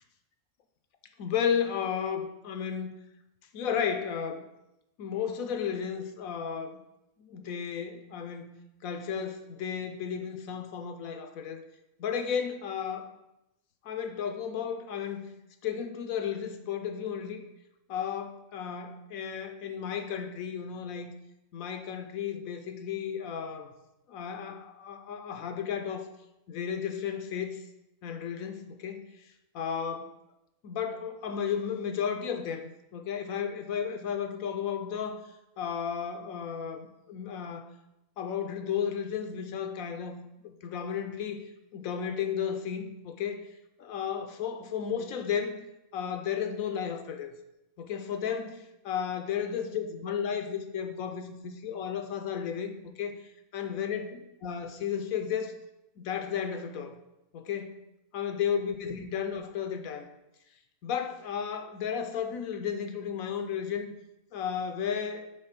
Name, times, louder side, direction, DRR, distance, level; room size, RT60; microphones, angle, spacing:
voice 1, 1.2-2.9 3.5-4.5 5.0-6.8 7.2-11.6 12.0-13.1 13.8-15.3 15.6-17.4 17.9-21.1 21.5-23.7 24.1-26.1 26.5-27.6 28.0-29.0 29.5-30.1 30.6-35.2 35.6-37.7 38.2-40.2 40.4-41.4 41.7-43.4 43.8-45.6 45.9-47.4 47.8-53.2 53.5-55.5 56.0-57.0 57.3-57.8 58.1-60.1 60.8-63.9 64.3-65.3, left 7 dB, 75° left, 7 dB, 1.1 m, -33 dB
6.4 x 4.0 x 5.9 m, 0.90 s
omnidirectional pair, 1.5 m